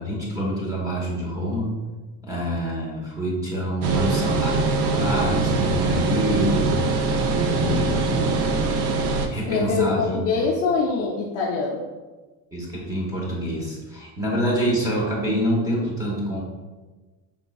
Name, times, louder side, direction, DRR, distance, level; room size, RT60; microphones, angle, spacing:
voice 1, 0.0-1.7 2.2-7.0 7.5-8.4 9.3-10.2 12.5-16.4, equal, 10° right, -4 dB, 0.9 m, -26 dB
sound 1, 3.8-9.3, right 3 dB, 45° right, 0.4 m, -23 dB
voice 2, 9.3-11.8, left 4 dB, 40° left, -2 dB, 0.4 m, -24 dB
5.1 x 3.5 x 2.3 m, 1.3 s
cardioid pair, 165°, 38 cm